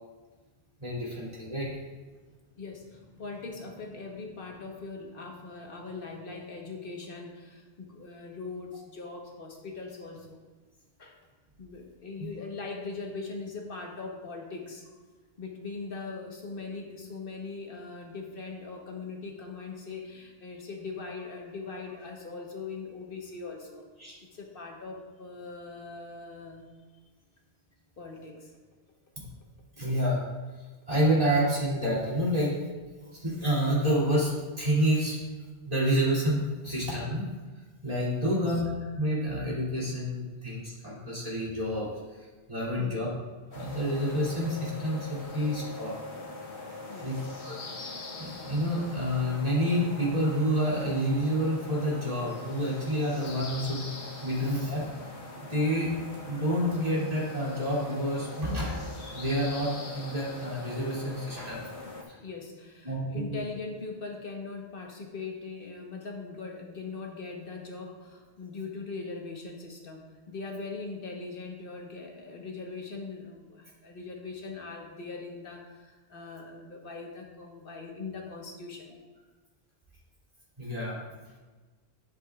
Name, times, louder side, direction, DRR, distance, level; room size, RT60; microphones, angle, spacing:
voice 1, 0.8-1.7 12.2-12.3 24.0-24.2 29.8-30.2 30.9-32.6 33.2-34.3 34.6-35.2 35.7-37.2 37.8-38.6 39.0-41.9 42.5-43.1 43.5-45.9 47.0-47.2 47.4-47.5 48.2-53.9 54.2-54.9 55.5-55.9 56.2-61.6 62.1-62.2 62.8-63.4 80.6-81.0, equal, 35° right, -7 dB, 2.8 m, -28 dB
voice 2, 2.6-10.4 11.0-11.2 11.6-14.9 15.4-23.8 24.3-26.7 28.0-28.5 38.2-38.6 42.8-43.1 46.9-47.3 62.2-79.0, left 4 dB, 60° left, 1 dB, 1.4 m, -41 dB
sound 1, 43.5-62.0, left 3 dB, 85° left, 1.4 m, -42 dB
10.5 x 8.0 x 2.4 m, 1.3 s
omnidirectional pair, 1.1 m